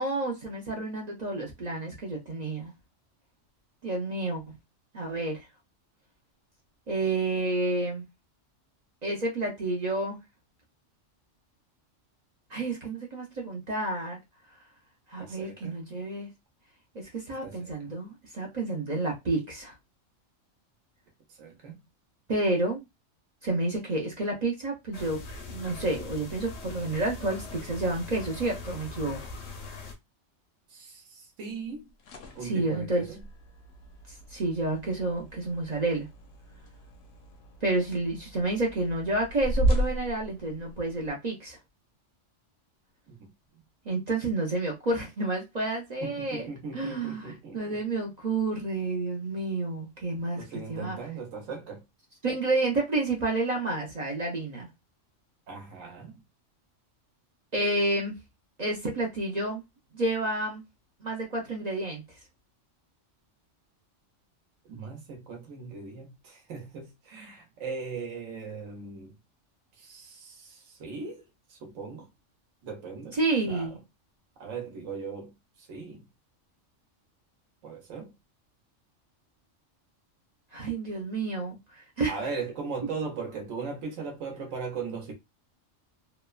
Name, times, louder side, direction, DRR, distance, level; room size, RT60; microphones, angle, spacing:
voice 1, 0.0-2.7 3.8-4.4 4.9-5.5 6.9-8.0 9.0-10.2 12.5-14.2 15.1-16.3 16.9-19.7 22.3-22.8 23.4-25.2 25.5-29.2 32.4-33.0 34.3-36.1 37.6-41.6 43.9-46.5 46.7-51.0 52.2-54.7 57.5-58.1 58.6-59.6 59.9-60.6 61.0-62.0 73.1-73.8 80.5-82.1, right 2 dB, 50° right, 0.5 m, -30 dB
voice 2, 15.2-15.8 17.3-17.9 21.3-21.8 30.7-31.9 32.3-33.2 43.1-43.6 46.0-47.8 50.4-51.8 55.5-56.2 64.6-69.2 69.7-72.1 72.6-73.2 73.5-73.8 74.4-76.1 77.6-78.1 82.1-85.1, right 5 dB, 85° right, 1.1 m, -39 dB
sound 1, 24.9-29.9, left 3 dB, 85° left, 1.1 m, -41 dB
sound 2, 31.7-41.1, right 1 dB, 65° left, 0.8 m, -34 dB
2.9 x 2.1 x 2.3 m
omnidirectional pair, 1.3 m